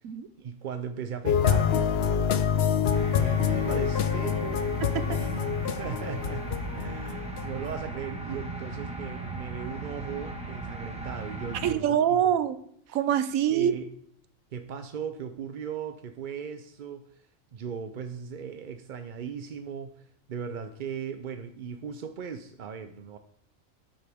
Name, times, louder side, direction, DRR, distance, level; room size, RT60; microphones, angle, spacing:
voice 1, 0.4-1.9 3.0-4.7 5.1-6.5 6.7-12.2 13.5-13.9 14.5-17.1 17.5-23.2, right 7 dB, 55° right, 7 dB, 0.5 m, -37 dB
sound 1, 1.3-7.7, left 7 dB, 60° left, 0.8 m, -26 dB
sound 2, 2.9-11.7, right 2 dB, 5° right, 1.4 m, -37 dB
voice 2, 11.6-12.6 12.9-13.7, right 9 dB, 85° right, 13 dB, 1.1 m, -25 dB
10.5 x 9.2 x 3.5 m, 0.67 s
omnidirectional pair, 1.4 m